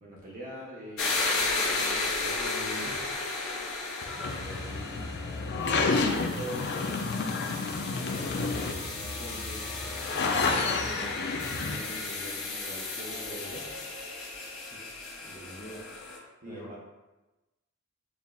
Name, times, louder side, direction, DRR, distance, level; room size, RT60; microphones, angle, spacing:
voice 1, 0.0-3.2 5.8-6.9 8.0-9.6 10.7-13.7 16.4-16.8, right 1 dB, 45° right, -5 dB, 0.8 m, -43 dB
sound 1, 1.0-16.2, left 3 dB, 85° left, 1.1 m, -34 dB
sound 2, 4.0-11.8, left 4 dB, 55° left, 0.4 m, -30 dB
voice 2, 4.1-5.2 14.7-14.9 15.2-15.8 16.4-16.8, equal, 35° left, -7 dB, 1.2 m, -45 dB
7.1 x 2.4 x 2.3 m, 1.1 s
head